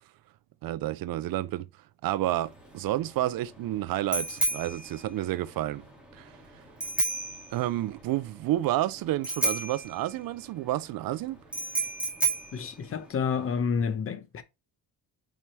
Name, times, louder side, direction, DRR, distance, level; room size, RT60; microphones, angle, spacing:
voice 1, 0.6-1.7 2.0-5.8 6.1-6.3 7.5-11.4, right 14 dB, 65° right, 0.5 m, -30 dB
Bicycle bell, 2.4-13.6, right 2 dB, 5° right, 2.1 m, -33 dB
voice 2, 12.5-14.4, left 6 dB, 35° left, 0.8 m, -29 dB
7.2 x 4.9 x 3.1 m
cardioid pair, 170°, 38 cm